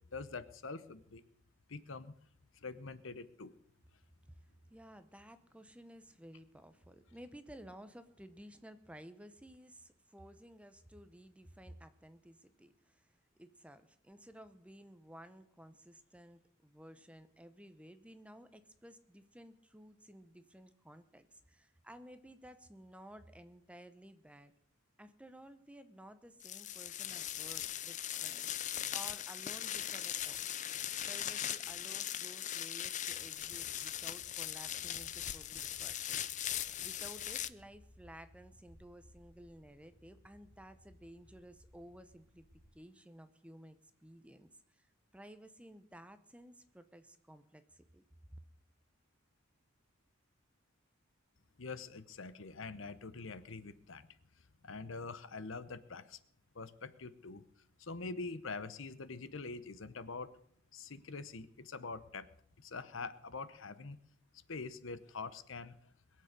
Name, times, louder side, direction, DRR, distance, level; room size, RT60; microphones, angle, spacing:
voice 1, 0.1-1.2 1.7-2.1 2.6-3.5 51.6-54.1 54.6-56.2 56.5-57.4 57.8-60.3 60.7-62.3 62.6-64.0 64.5-65.7, left 4 dB, 65° left, 14 dB, 0.9 m, -44 dB
voice 2, 4.7-24.5 25.0-30.6 31.0-36.3 36.8-42.5 42.7-44.9 45.1-48.0 48.3-48.4, equal, 5° right, 11 dB, 0.8 m, -55 dB
sound 1, 26.4-37.5, left 11 dB, 35° left, 0.5 m, -40 dB
sound 2, 33.5-42.7, equal, 80° left, 3.4 m, -63 dB
21.5 x 7.8 x 6.7 m, 0.66 s
head